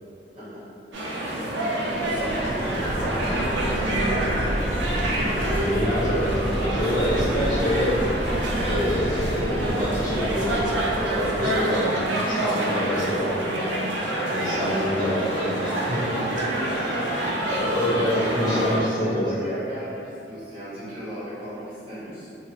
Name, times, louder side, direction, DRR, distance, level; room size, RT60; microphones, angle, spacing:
voice 1, 0.3-0.6 1.3-4.6 17.0-17.3 18.1-22.3, equal, 30° right, -13 dB, 1.1 m, -36 dB
sound 1, 0.9-18.8, right 1 dB, 80° right, 0.4 m, -27 dB
sound 2, 1.9-11.7, equal, 5° right, 0.3 m, -29 dB
voice 2, 5.5-7.9 8.7-11.9 12.2-13.3 14.3-16.1 16.7-16.8 17.4-19.3, equal, 45° left, -12 dB, 1.1 m, -26 dB
2.9 x 2.2 x 2.7 m, 2.6 s
head